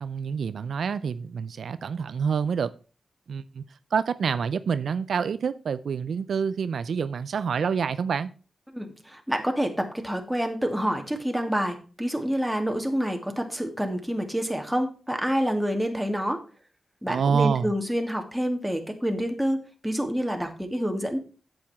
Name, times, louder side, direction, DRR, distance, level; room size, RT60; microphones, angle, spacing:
voice 1, 0.0-2.7 3.3-3.6 3.9-8.3 17.1-17.7, right 6 dB, 75° right, 0.4 m, -27 dB
voice 2, 8.7-16.4 17.0-21.2, equal, 5° right, 2.2 m, -28 dB
8.5 x 8.0 x 4.2 m
cardioid pair, 65°, 0 cm